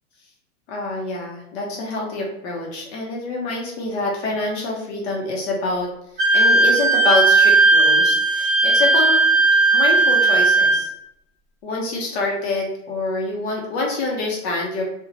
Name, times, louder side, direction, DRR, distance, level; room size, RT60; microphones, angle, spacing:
voice 1, 0.7-5.9 6.1-9.2 9.7-10.9 11.6-14.8, left 2 dB, 55° left, -1 dB, 0.7 m, -26 dB
Wind instrument woodwind instrument, 6.2-10.9, right 3 dB, 25° right, 0.9 m, -16 dB
2.7 x 2.2 x 2.5 m, 0.79 s
supercardioid pair, 165°, 39 cm